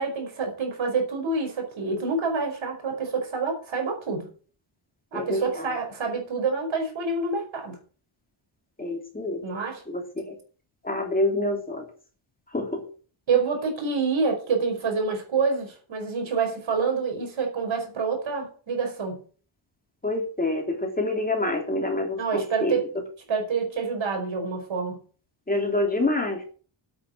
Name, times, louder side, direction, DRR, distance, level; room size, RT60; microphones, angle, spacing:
voice 1, 0.0-4.3 5.1-7.8 9.4-9.8 13.3-19.2 22.2-22.9 23.3-25.0, right 4 dB, 65° right, 4 dB, 5.2 m, -27 dB
voice 2, 5.1-5.7 8.8-9.4 9.9-10.4 10.8-11.9 12.5-12.9 20.0-22.8 25.5-26.5, left 2 dB, 15° left, 2 dB, 3.1 m, -27 dB
8.9 x 8.8 x 7.8 m, 0.41 s
wide cardioid pair, 115°, 49 cm